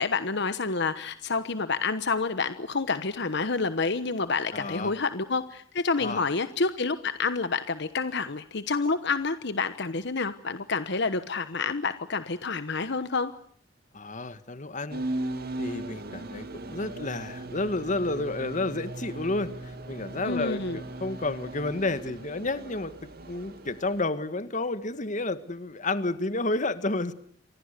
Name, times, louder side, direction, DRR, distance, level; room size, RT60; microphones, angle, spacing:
voice 1, 0.0-13.3 20.2-20.8, left 4 dB, 60° left, 12 dB, 1.2 m, -28 dB
voice 2, 4.5-4.9 6.0-6.2 13.9-15.0 15.6-27.1, left 2 dB, 40° left, 12 dB, 1.7 m, -31 dB
sound 1, 14.9-24.0, right 1 dB, 55° right, 2.8 m, -38 dB
29.5 x 24.5 x 6.8 m, 0.62 s
head